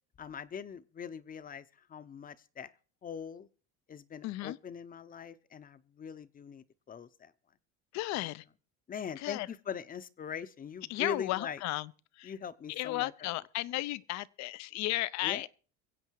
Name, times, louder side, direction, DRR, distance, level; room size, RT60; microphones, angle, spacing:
voice 1, 0.2-2.7 3.0-3.5 3.9-7.3 8.1-8.4 8.9-11.6 12.2-13.3 15.2-15.5, left 7 dB, 30° left, 0.8 m, -42 dB
voice 2, 4.2-4.6 7.9-8.4 9.2-9.5 10.9-11.9 12.2-12.3 12.7-15.5, left 18 dB, 65° left, 0.6 m, -34 dB
23.0 x 8.0 x 4.6 m
cardioid pair, 115°, 31 cm